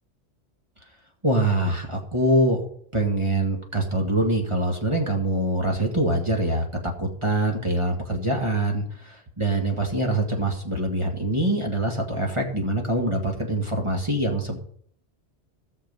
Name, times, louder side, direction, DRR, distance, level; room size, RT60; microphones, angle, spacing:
voice 1, 1.2-2.7 2.9-6.6 7.0-14.6, right 1 dB, 25° right, 0 dB, 1.9 m, -24 dB
17.0 x 6.5 x 5.5 m, 0.62 s
omnidirectional pair, 1.2 m